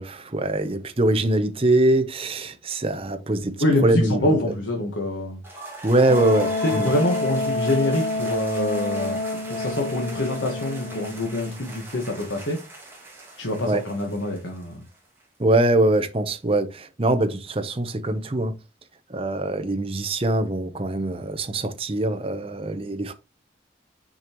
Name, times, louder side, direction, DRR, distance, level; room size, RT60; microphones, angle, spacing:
voice 1, 0.0-3.6 3.8-4.4 5.8-6.9 13.7-13.8 15.4-18.5 19.1-23.1, right 1 dB, 30° right, 0.7 m, -23 dB
voice 2, 3.6-5.4 6.6-9.2 9.5-12.6 13.4-14.8, left 1 dB, 90° left, 1.5 m, -25 dB
sound 1, 5.4-15.2, right 2 dB, 15° right, 1.9 m, -40 dB
Wind instrument woodwind instrument, 6.1-11.6, left 2 dB, 50° left, 1.2 m, -28 dB
6.3 x 5.3 x 3.0 m
head